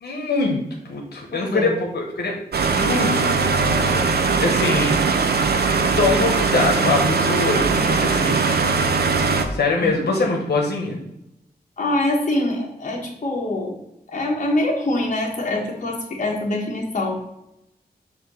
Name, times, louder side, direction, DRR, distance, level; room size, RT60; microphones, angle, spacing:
voice 1, 0.0-0.6 0.9-2.3 2.8-3.7 4.4-5.0 6.0-8.5 9.5-11.0, left 3 dB, 85° left, 0 dB, 1.0 m, -23 dB
voice 2, 1.3-1.7 9.8-9.9 11.8-13.7 14.1-17.2, left 1 dB, 50° left, -1 dB, 1.3 m, -24 dB
sound 1, 2.5-9.4, right 4 dB, 75° right, 0.6 m, -20 dB
6.4 x 2.8 x 5.4 m, 0.85 s
wide cardioid pair, 150°, 16 cm